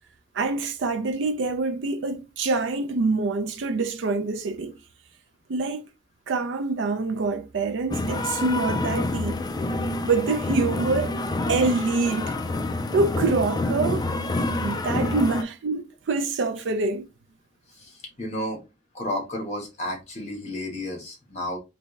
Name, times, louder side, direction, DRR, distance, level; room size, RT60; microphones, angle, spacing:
voice 1, 0.3-4.8 5.5-5.9 6.3-9.4 10.0-11.2 11.5-12.4 12.9-14.0 14.6-17.1, right 3 dB, 80° right, 0.4 m, -25 dB
sound 1, 7.9-15.4, left 2 dB, 20° left, 0.3 m, -27 dB
voice 2, 17.8-18.6 18.9-21.6, left 1 dB, 40° left, 1.2 m, -32 dB
3.3 x 2.7 x 3.1 m
head